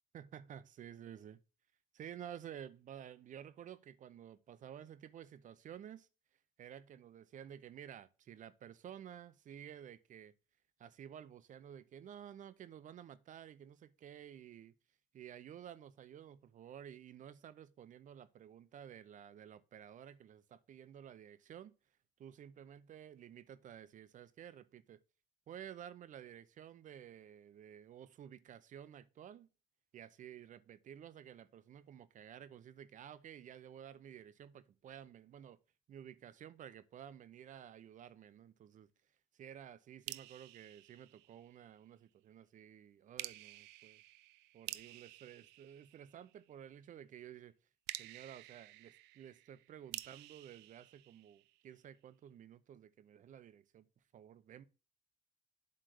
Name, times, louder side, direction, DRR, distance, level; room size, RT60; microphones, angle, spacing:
voice 1, 0.1-1.4 1.9-6.1 6.6-10.3 10.8-14.7 15.1-21.7 22.2-25.0 25.5-29.5 29.9-35.6 35.9-38.9 39.3-44.0 44.5-47.5 48.0-53.9 54.1-54.6, right 9 dB, 50° right, 0.6 m, -53 dB
sound 1, 40.1-41.8 43.2-46.5 47.9-51.8, right 17 dB, 85° right, 0.4 m, -50 dB
7.8 x 3.3 x 6.4 m
cardioid pair, 110°, 17 cm